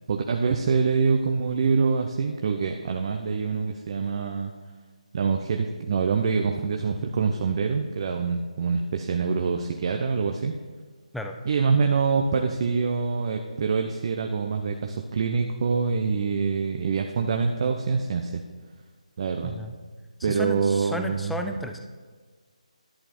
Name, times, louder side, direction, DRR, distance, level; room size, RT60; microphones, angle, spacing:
voice 1, 0.1-4.5 5.1-10.5 11.4-18.4 19.2-19.5 20.2-21.4, right 5 dB, 40° right, 4 dB, 0.7 m, -25 dB
voice 2, 19.4-19.7 20.2-21.8, left 1 dB, ahead, 4 dB, 0.5 m, -33 dB
11.0 x 8.9 x 4.3 m, 1.5 s
figure-of-eight pair, 155°, 4 cm